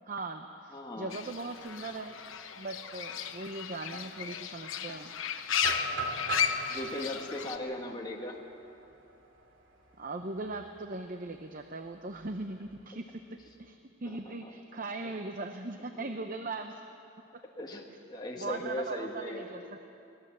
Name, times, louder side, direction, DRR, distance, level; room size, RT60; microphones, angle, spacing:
voice 1, 0.1-2.2 2.5-5.1 10.0-16.8 17.3-17.4 18.4-19.8, right 2 dB, 40° right, 6 dB, 0.8 m, -39 dB
voice 2, 0.7-1.1 6.7-8.4 14.1-14.5 15.0-15.1 17.6-19.5, left 1 dB, 20° left, -1 dB, 1.7 m, -38 dB
Fowl / Bird, 1.1-7.6, left 8 dB, 70° left, 1.1 m, -35 dB
sound 1, 5.5-9.4 9.9-10.0 10.5-10.8 12.1-12.9, right 1 dB, 65° right, 2.6 m, -39 dB
24.0 x 17.5 x 7.4 m, 2.7 s
head